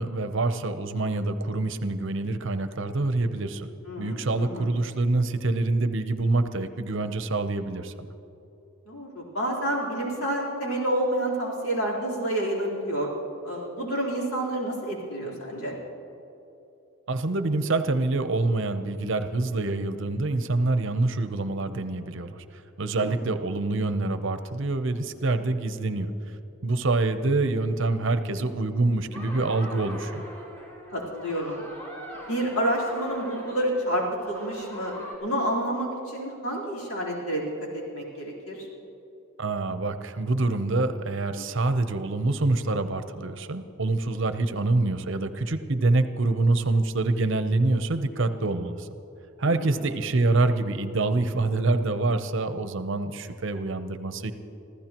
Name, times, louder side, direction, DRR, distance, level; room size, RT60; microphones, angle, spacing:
voice 1, 0.0-3.7 4.0-7.9 17.1-22.4 22.8-26.1 26.6-30.2 39.4-48.9 49.4-54.3, right 2 dB, 60° right, 9 dB, 0.7 m, -26 dB
voice 2, 3.9-4.7 8.9-13.1 13.4-15.7 23.0-23.2 30.9-31.6 32.3-37.4 37.7-38.7 41.4-41.5 49.4-49.7, right 1 dB, 85° left, -4 dB, 3.9 m, -29 dB
sound 1, 29.1-35.2, equal, 10° left, 3.0 m, -42 dB
26.0 x 15.0 x 3.0 m, 3.0 s
head